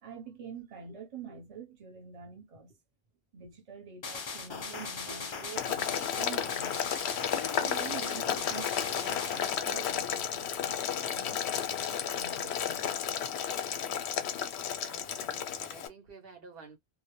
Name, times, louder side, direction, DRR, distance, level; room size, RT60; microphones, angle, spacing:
voice 1, 0.0-2.8 3.3-6.9 7.3-12.9, right 6 dB, 35° right, 0.8 m, -46 dB
sound 1, 4.0-9.6, left 5 dB, 45° left, 0.3 m, -39 dB
Boiling, 5.6-15.9, left 9 dB, 90° left, 0.8 m, -33 dB
voice 2, 14.8-16.8, right 5 dB, 65° right, 0.9 m, -51 dB
2.2 x 2.0 x 2.9 m
omnidirectional pair, 1.1 m